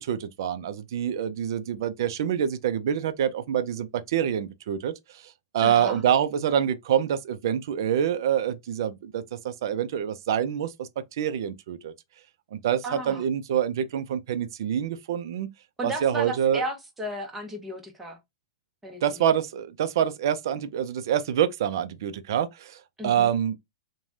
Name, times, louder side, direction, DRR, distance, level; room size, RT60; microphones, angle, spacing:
voice 1, 0.0-5.2 5.5-10.9 11.2-11.9 12.5-15.5 15.8-16.6 19.0-23.6, right 9 dB, 60° right, 0.4 m, -26 dB
voice 2, 5.6-6.0 12.8-13.3 15.8-18.2 18.8-19.3 23.0-23.3, right 1 dB, 10° right, 0.8 m, -34 dB
3.2 x 2.2 x 2.5 m
hypercardioid pair, 150°, 2 cm